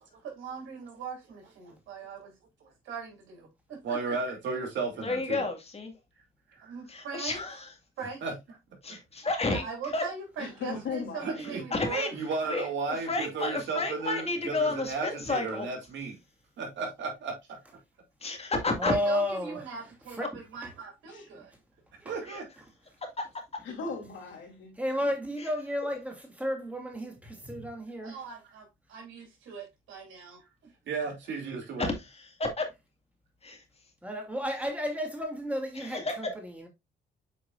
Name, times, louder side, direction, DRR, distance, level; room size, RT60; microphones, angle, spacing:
voice 1, 0.2-2.3 2.8-4.0 6.7-7.4 8.0-8.2 9.5-12.1 12.4-12.5 18.8-21.5 28.0-30.4, right 6 dB, 85° right, 3.5 m, -40 dB
voice 2, 3.8-5.4 8.2-8.3 11.2-11.6 12.1-16.2 16.6-17.4 22.0-22.4 30.9-31.9, right 4 dB, 65° right, 2.9 m, -34 dB
voice 3, 5.0-5.9 7.1-7.5 8.8-9.7 9.9-10.0 11.4-12.1 12.5-12.7 13.1-15.7 18.2-18.9 22.3-22.4 23.2-23.3 25.4-25.5 31.8-32.7 33.4-33.6 35.7-36.3, left 3 dB, 30° left, 1.9 m, -31 dB
voice 4, 10.4-11.5 21.1-21.3 23.6-24.7, left 5 dB, 75° left, 2.9 m, -37 dB
voice 5, 18.8-19.6 20.2-20.3 22.0-22.1 24.8-28.2 34.0-36.7, equal, 5° right, 2.7 m, -32 dB
7.9 x 4.7 x 2.5 m
cardioid pair, 90°, 20 cm